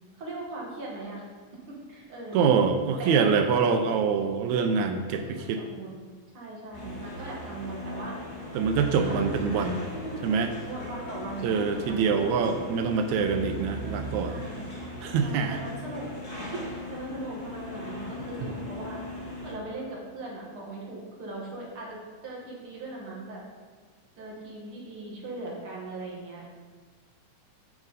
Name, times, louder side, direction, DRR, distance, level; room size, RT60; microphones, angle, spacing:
voice 1, 0.2-1.2 1.9-2.5 3.0-3.2 5.1-6.0 6.3-8.1 9.0-9.4 9.9-10.3 10.6-12.4 14.3-14.7 15.2-19.0 19.4-23.4 24.2-26.4, right 2 dB, 50° right, -4 dB, 2.2 m, -39 dB
voice 2, 2.3-5.6 8.6-9.9 10.2-10.5 11.4-14.4 15.0-15.6, right 5 dB, 85° right, 6 dB, 2.0 m, -25 dB
sound 1, 6.7-19.5, left 1 dB, 65° left, 3.3 m, -38 dB
9.0 x 5.9 x 4.1 m, 1.4 s
omnidirectional pair, 3.3 m